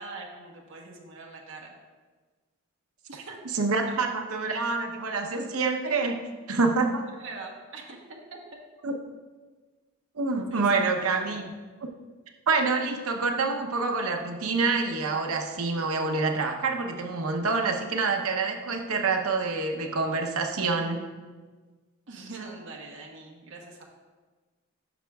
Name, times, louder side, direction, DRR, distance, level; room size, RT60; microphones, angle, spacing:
voice 1, 0.0-1.7 3.1-3.4 3.8-4.0 7.1-8.4 10.5-11.4 22.1-23.8, right 3 dB, 60° right, 0 dB, 1.0 m, -43 dB
voice 2, 3.5-6.2 6.5-7.1 8.8-8.9 10.2-11.5 12.5-21.1, right 4 dB, 80° right, 3 dB, 0.8 m, -27 dB
10.0 x 6.1 x 2.3 m, 1.4 s
head